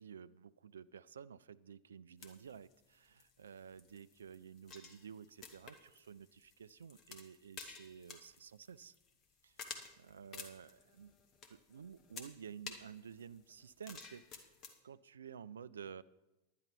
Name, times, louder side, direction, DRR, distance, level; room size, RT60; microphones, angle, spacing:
voice 1, 0.0-8.9 9.4-9.8 10.1-11.1 11.5-14.2 14.8-16.0, right 7 dB, 70° right, 16 dB, 0.3 m, -52 dB
sound 1, 2.2-14.8, left 5 dB, 30° left, 1.3 m, -54 dB
10.5 x 10.0 x 5.3 m, 1.0 s
figure-of-eight pair, 90°, 0 cm